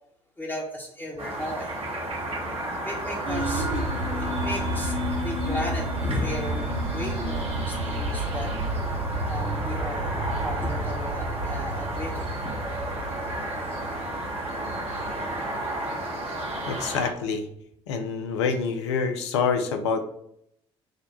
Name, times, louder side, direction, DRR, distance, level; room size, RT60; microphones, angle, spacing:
voice 1, 0.4-1.7 2.8-8.6 9.3-10.2 10.4-12.5, left 1 dB, 15° left, -4 dB, 1.0 m, -35 dB
sound 1, 1.2-17.1, right 1 dB, 45° right, 1.2 m, -33 dB
sound 2, 3.3-16.2, right 1 dB, 70° right, 0.8 m, -31 dB
voice 2, 16.7-17.5 17.9-20.0, left 5 dB, 75° left, 6 dB, 0.5 m, -26 dB
6.2 x 2.2 x 2.8 m, 0.73 s
figure-of-eight pair, 50°, 15 cm